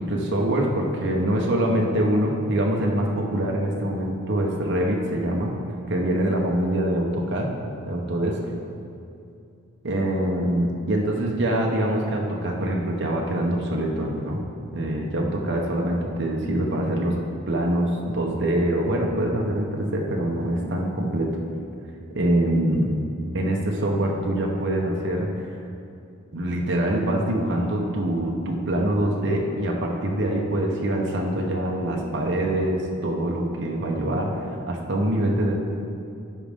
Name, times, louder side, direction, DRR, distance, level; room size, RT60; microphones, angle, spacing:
voice 1, 0.0-5.5 5.9-7.5 7.9-8.4 9.8-14.4 14.7-17.1 17.5-21.3 22.1-22.9 23.3-25.6 26.3-35.5, right 1 dB, 50° right, -1 dB, 0.8 m, -24 dB
12.5 x 5.1 x 3.6 m, 2.6 s
head